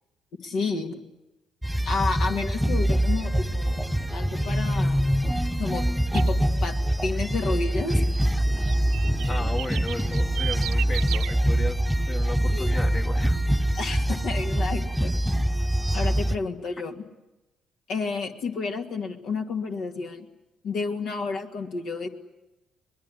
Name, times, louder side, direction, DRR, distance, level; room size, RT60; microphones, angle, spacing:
voice 1, 0.4-1.0 1.8-5.2 5.6-5.8 6.1-8.0 12.3-12.7 13.7-15.1 15.9-17.0 17.9-20.3 20.6-22.1, left 4 dB, 70° left, 3 dB, 2.4 m, -31 dB
sound 1, 1.6-16.4, right 1 dB, ahead, 1.1 m, -24 dB
sound 2, 6.1-6.3 8.6-11.3, right 14 dB, 80° right, 0.9 m, -34 dB
voice 2, 9.3-13.4, left 2 dB, 40° left, 4 dB, 1.6 m, -35 dB
23.5 x 21.0 x 9.9 m, 1.0 s
hypercardioid pair, 55°, 0 cm